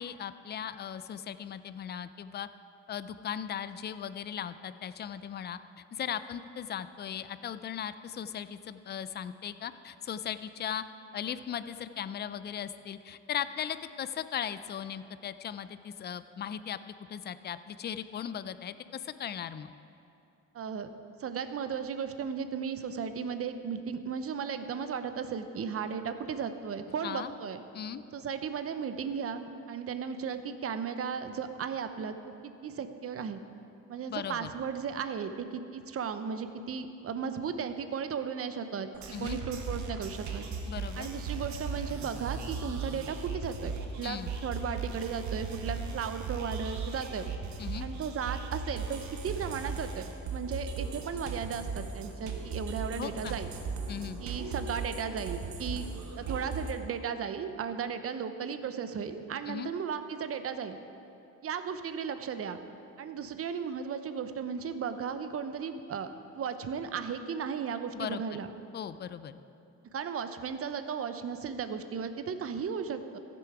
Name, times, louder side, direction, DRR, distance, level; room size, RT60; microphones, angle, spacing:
voice 1, 0.0-2.5 2.9-5.6 5.9-10.8 11.1-19.7 27.0-27.3 27.7-28.0 34.1-34.5 39.1-39.4 40.7-41.1 44.0-44.3 47.6-47.9 53.0-53.4 53.9-54.2 59.5-59.7 67.9-68.2 68.7-69.4, left 9 dB, 35° left, 13 dB, 0.4 m, -38 dB
voice 2, 20.5-20.9 21.2-27.6 28.1-32.1 32.4-33.4 33.9-40.5 41.0-47.3 47.8-53.5 54.2-55.9 56.2-60.8 61.4-62.6 63.0-66.1 66.3-68.5 69.9-73.2, right 6 dB, 50° right, 9 dB, 0.7 m, -35 dB
sound 1, 38.9-56.7, right 4 dB, 70° right, 1.2 m, -37 dB
15.0 x 6.9 x 4.8 m, 2.7 s
cardioid pair, 90°, 30 cm